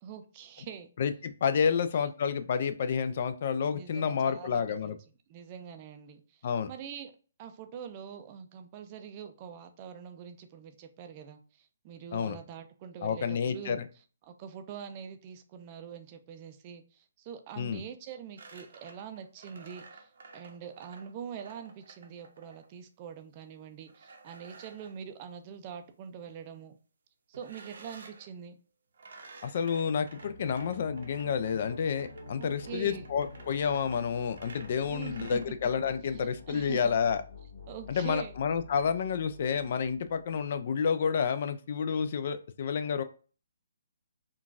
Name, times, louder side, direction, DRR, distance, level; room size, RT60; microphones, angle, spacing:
voice 1, 0.0-0.9 1.7-2.1 3.7-5.0 5.3-7.1 7.4-13.8 14.2-26.8 27.3-28.6 32.3-33.1 34.9-35.6 36.1-36.9 37.7-38.3, right 8 dB, 35° right, 0.4 m, -44 dB
voice 2, 1.0-5.0 6.4-6.7 12.1-12.4 13.0-13.8 17.6-17.8 29.4-37.2 37.9-43.0, left 6 dB, 50° left, 0.3 m, -30 dB
sound 1, 18.4-22.7 23.9-25.0 27.3-28.3 28.9-35.4, right 4 dB, 65° right, 0.7 m, -52 dB
sound 2, 30.0-40.6, left 2 dB, 70° left, 1.0 m, -48 dB
3.7 x 2.4 x 2.4 m
figure-of-eight pair, 140°, 0 cm